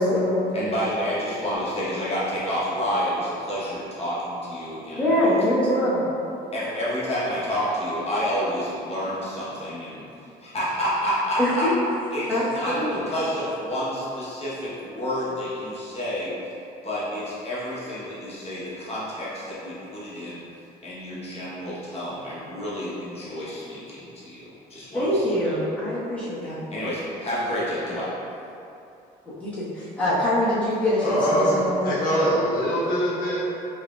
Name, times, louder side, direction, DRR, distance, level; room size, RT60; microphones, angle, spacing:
voice 1, 0.0-0.4 4.9-6.0 11.4-11.7 12.3-13.0 24.9-26.6 29.4-31.9, left 1 dB, 10° left, -12 dB, 1.4 m, -23 dB
voice 2, 0.5-5.4 6.5-10.0 10.4-11.7 12.1-16.3 16.8-20.4 20.8-25.6 26.7-28.1, equal, 40° left, -8 dB, 1.1 m, -29 dB
voice 3, 31.0-31.6 31.8-33.5, equal, 55° left, -8 dB, 0.8 m, -23 dB
4.7 x 2.9 x 2.4 m, 2.7 s
cardioid pair, 110°, 17 cm